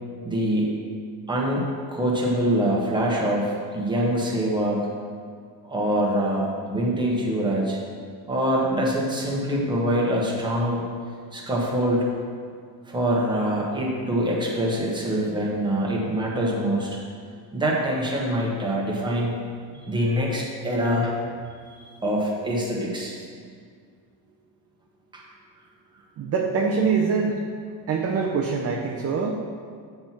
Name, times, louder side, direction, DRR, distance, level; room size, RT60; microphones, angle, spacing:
voice 1, 0.2-0.7 1.3-1.6 1.9-4.9 5.6-7.8 8.3-10.8 11.3-12.1 12.9-17.0 17.5-19.3 19.7-21.1 22.0-23.2 25.1-25.2, equal, 10° right, -4 dB, 1.2 m, -24 dB
voice 2, 26.2-27.4 27.9-29.3, right 5 dB, 30° right, 0 dB, 0.5 m, -24 dB
7.6 x 4.5 x 5.8 m, 2.1 s
cardioid pair, 150°, 47 cm